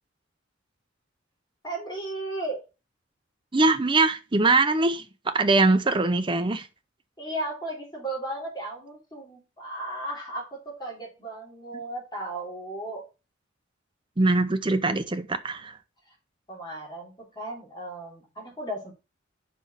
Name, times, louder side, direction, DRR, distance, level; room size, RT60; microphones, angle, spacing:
voice 1, 1.6-2.6 7.2-13.0 16.1-16.2 16.5-18.9, right 1 dB, 20° left, 3.0 m, -35 dB
voice 2, 3.5-6.7 14.2-15.8, right 3 dB, 25° right, 0.6 m, -22 dB
5.3 x 5.2 x 5.7 m
head